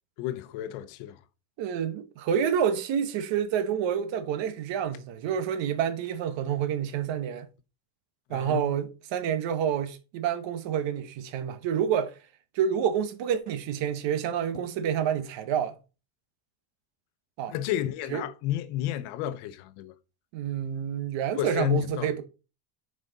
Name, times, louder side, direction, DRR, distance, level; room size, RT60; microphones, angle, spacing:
voice 1, 0.2-1.2 8.3-8.7 17.5-19.9 21.3-22.1, left 12 dB, 90° left, 0.8 m, -31 dB
voice 2, 1.6-7.5 8.3-12.2 12.5-15.8 17.4-17.5 18.1-18.2 20.3-22.2, right 8 dB, 65° right, 1.2 m, -28 dB
6.2 x 5.1 x 4.0 m
cardioid pair, 150°, 48 cm